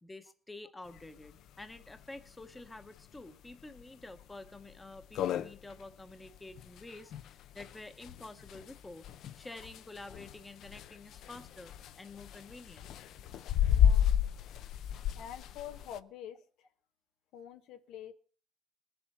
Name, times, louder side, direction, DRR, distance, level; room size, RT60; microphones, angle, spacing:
voice 1, 0.0-12.9, left 2 dB, 10° left, 9 dB, 0.9 m, -49 dB
sound 1, 1.0-1.1 1.3-1.4 1.8-1.9 2.4-2.7 3.2-3.3 3.8-3.9 4.2-4.3 4.7-4.8 5.0-16.0, left 9 dB, 65° left, 0.6 m, -32 dB
voice 2, 13.7-14.1 15.1-16.7 17.3-18.1, left 9 dB, 90° left, 8 dB, 1.2 m, -46 dB
21.0 x 7.8 x 4.3 m, 0.41 s
cardioid pair, 145°, 0 cm